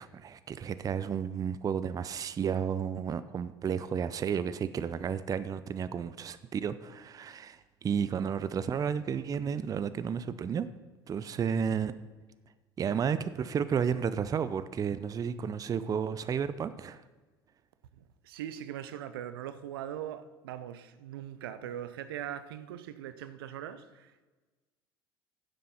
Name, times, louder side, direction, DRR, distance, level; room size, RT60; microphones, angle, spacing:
voice 1, 0.0-10.7 11.1-11.9 12.8-17.0, right 7 dB, 30° right, 0.6 m, -32 dB
voice 2, 18.0-24.3, right 10 dB, 70° right, 0.7 m, -41 dB
10.5 x 7.6 x 5.7 m
figure-of-eight pair, 70°, 13 cm